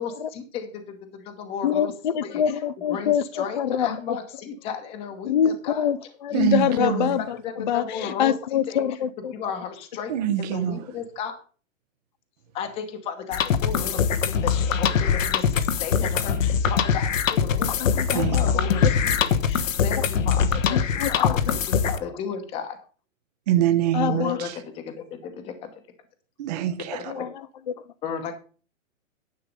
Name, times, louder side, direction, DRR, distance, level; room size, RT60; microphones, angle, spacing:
voice 1, 0.0-1.9 2.2-5.9 6.3-6.5 6.7-7.1 7.4-9.0 9.3-11.4 12.5-22.8 24.1-25.8 26.9-27.1 28.0-28.4, left 6 dB, 15° left, 1.0 m, -34 dB
voice 2, 1.6-4.0 5.3-7.2 7.6-9.3 17.7-18.5 18.8-18.9 20.7-21.5 23.9-24.4 27.1-27.3, left 9 dB, 40° left, 0.4 m, -25 dB
voice 3, 6.3-7.2 10.1-10.8 18.1-18.4 23.5-24.5 26.4-27.1, right 12 dB, 30° right, 0.7 m, -24 dB
sound 1, 13.3-22.0, left 7 dB, 75° left, 1.2 m, -23 dB
10.5 x 6.6 x 5.2 m
hypercardioid pair, 160°, 40 cm